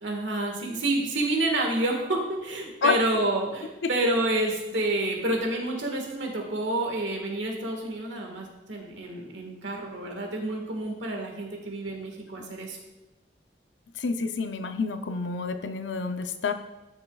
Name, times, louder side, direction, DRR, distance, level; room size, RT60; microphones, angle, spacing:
voice 1, 0.0-12.8, right 1 dB, 85° right, 1 dB, 1.7 m, -29 dB
voice 2, 14.0-16.5, left 4 dB, 80° left, 8 dB, 0.6 m, -28 dB
12.5 x 6.5 x 2.4 m, 1.0 s
head